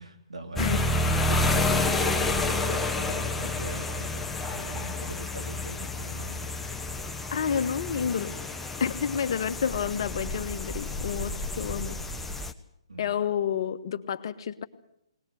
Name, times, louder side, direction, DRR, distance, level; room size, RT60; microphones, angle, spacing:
voice 1, 0.0-4.3 4.5-6.4 12.9-13.1, right 2 dB, 85° right, 4 dB, 3.4 m, -42 dB
sound 1, 0.6-12.5, left 2 dB, 5° left, 1.0 m, -29 dB
voice 2, 7.3-8.3 8.8-12.0 13.0-14.7, left 7 dB, 50° left, 9 dB, 1.4 m, -29 dB
20.5 x 19.5 x 8.0 m, 0.75 s
figure-of-eight pair, 135°, 3 cm